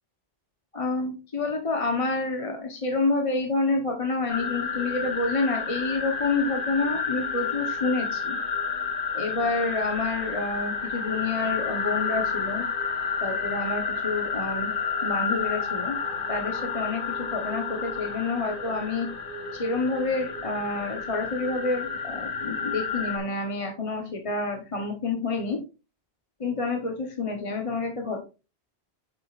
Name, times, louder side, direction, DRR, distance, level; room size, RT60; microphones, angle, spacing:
voice 1, 0.7-8.4 9.1-12.7 13.2-14.7 15.0-16.0 16.3-19.1 19.5-25.6 26.4-28.2, left 3 dB, 35° left, 2 dB, 1.1 m, -28 dB
sound 1, 4.3-23.2, left 5 dB, 55° left, 1.3 m, -30 dB
8.8 x 7.5 x 2.4 m, 0.31 s
omnidirectional pair, 1.1 m